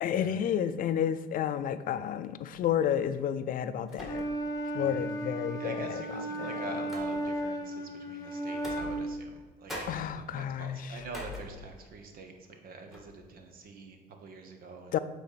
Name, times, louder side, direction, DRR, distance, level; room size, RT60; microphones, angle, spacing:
voice 1, 0.0-4.2 4.7-6.7 9.9-11.0 14.9-15.0, left 9 dB, 55° left, 12 dB, 0.4 m, -31 dB
sound 1, 2.5-2.8 3.9-4.6 5.0-5.1 6.0-7.5 8.5-9.4 9.7-12.0 12.4-12.6 12.9-13.3, left 1 dB, ahead, 1.9 m, -45 dB
Wind instrument woodwind instrument, 4.0-9.2, right 1 dB, 20° left, 1.0 m, -35 dB
voice 2, 4.7-5.1 5.6-12.3 12.6-14.9, right 4 dB, 60° right, 5 dB, 1.2 m, -46 dB
8.1 x 4.1 x 5.1 m, 1.3 s
cardioid pair, 110°, 17 cm